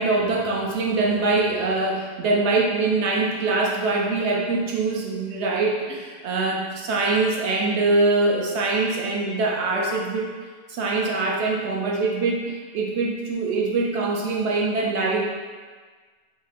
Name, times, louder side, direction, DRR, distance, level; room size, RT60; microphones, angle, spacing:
voice 1, 0.0-10.3 10.7-15.2, right 3 dB, 65° right, -2 dB, 0.7 m, -23 dB
2.9 x 2.5 x 4.0 m, 1.5 s
omnidirectional pair, 1.5 m